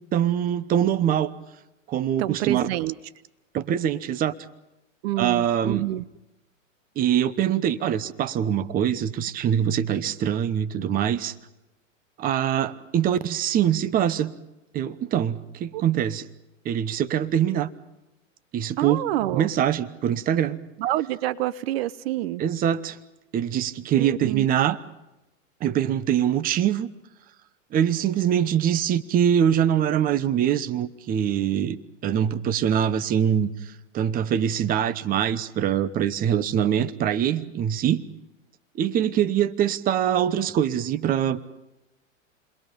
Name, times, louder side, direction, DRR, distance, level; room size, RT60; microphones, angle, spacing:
voice 1, 0.1-1.3 1.9-2.7 3.5-4.3 5.2-5.9 7.0-11.3 12.2-14.3 14.7-16.2 16.6-17.7 18.5-19.0 19.3-20.6 22.4-23.0 23.3-24.8 25.6-26.9 27.7-38.0 38.8-41.4, right 9 dB, 20° right, 1.0 m, -23 dB
voice 2, 2.2-2.9 5.0-6.0 15.7-15.8 18.8-19.5 20.8-22.4 24.0-24.4, right 14 dB, 50° right, 0.8 m, -27 dB
30.0 x 22.0 x 5.3 m
hypercardioid pair, 140°, 39 cm